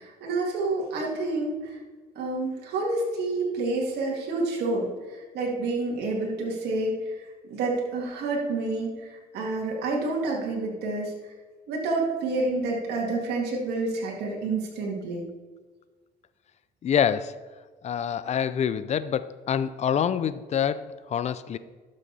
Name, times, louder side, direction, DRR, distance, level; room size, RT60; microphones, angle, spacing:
voice 1, 0.0-1.8 2.2-4.9 5.3-7.0 7.5-11.1 11.7-15.2, right 2 dB, 75° right, -2 dB, 2.3 m, -28 dB
voice 2, 16.8-17.4 17.8-21.6, left 8 dB, 40° left, 15 dB, 0.5 m, -26 dB
12.0 x 6.4 x 4.2 m, 1.3 s
cardioid pair, 110°, 17 cm